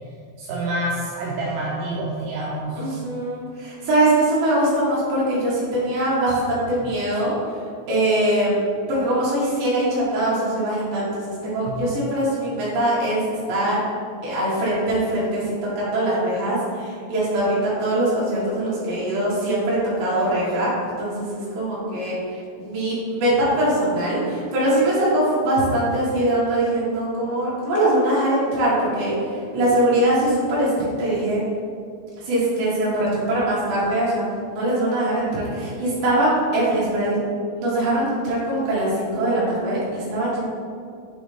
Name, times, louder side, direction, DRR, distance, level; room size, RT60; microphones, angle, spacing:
voice 1, 0.4-2.8 11.7-11.9, right 1 dB, 80° right, -4 dB, 2.7 m, -27 dB
voice 2, 2.8-7.3 7.9-8.6 8.9-13.2 13.5-13.8 14.2-20.7 21.0-29.2 29.5-31.4 32.2-37.2 37.6-40.4, right 1 dB, 65° right, -8 dB, 2.3 m, -22 dB
7.3 x 4.0 x 3.3 m, 2.3 s
omnidirectional pair, 6.0 m